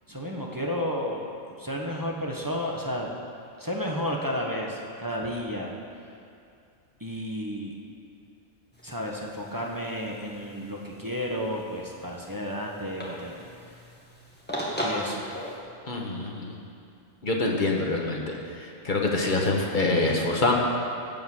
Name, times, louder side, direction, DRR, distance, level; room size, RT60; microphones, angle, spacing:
voice 1, 0.1-1.2 1.6-3.1 3.6-5.7 7.0-7.7 8.8-13.4 14.7-15.3, equal, 15° right, -1 dB, 1.1 m, -32 dB
sound 1, 8.7-15.6, equal, 10° left, 1.8 m, -38 dB
voice 2, 15.9-16.5 17.2-18.4 18.8-20.5, left 2 dB, 40° left, 0 dB, 1.5 m, -25 dB
16.0 x 5.3 x 7.2 m, 2.5 s
omnidirectional pair, 1.3 m